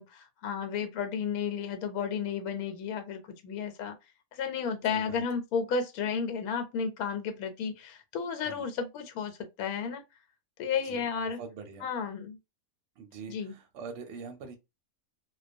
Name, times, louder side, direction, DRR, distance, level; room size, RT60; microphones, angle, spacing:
voice 1, 0.0-4.0 4.3-10.0 10.6-11.4 11.8-12.4 13.3-13.5, left 6 dB, 85° left, 1.1 m, -33 dB
voice 2, 4.9-5.2 8.3-8.7 10.7-11.9 13.0-14.6, right 5 dB, 70° right, 0.9 m, -44 dB
2.2 x 2.2 x 2.5 m
omnidirectional pair, 1.5 m